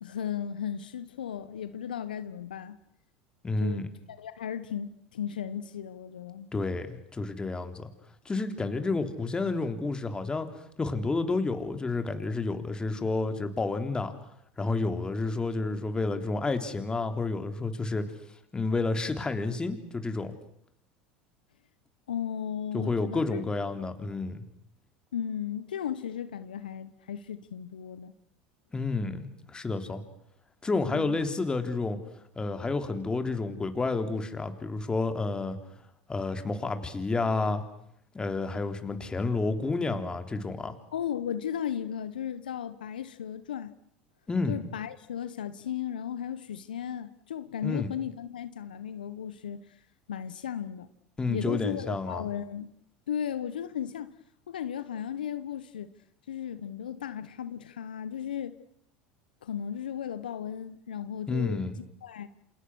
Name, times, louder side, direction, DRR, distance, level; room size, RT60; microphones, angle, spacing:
voice 1, 0.0-2.8 3.6-6.5 22.1-23.4 25.1-28.1 30.9-31.2 40.9-43.7 44.5-49.6 50.1-50.9 51.3-52.7 53.1-54.1 54.5-55.9 56.3-58.6 59.4-61.7 62.0-62.3, left 9 dB, 85° left, 1.2 m, -35 dB
voice 2, 3.4-3.9 6.5-7.9 8.3-10.5 10.8-14.1 14.6-18.1 18.5-20.3 22.7-24.4 28.7-30.0 30.6-32.0 32.4-35.6 36.1-37.6 38.1-40.8 44.3-44.6 47.6-47.9 51.2-52.3 61.3-61.8, left 3 dB, 20° left, 3.6 m, -30 dB
28.5 x 27.5 x 6.4 m
hypercardioid pair, 85°, 5 cm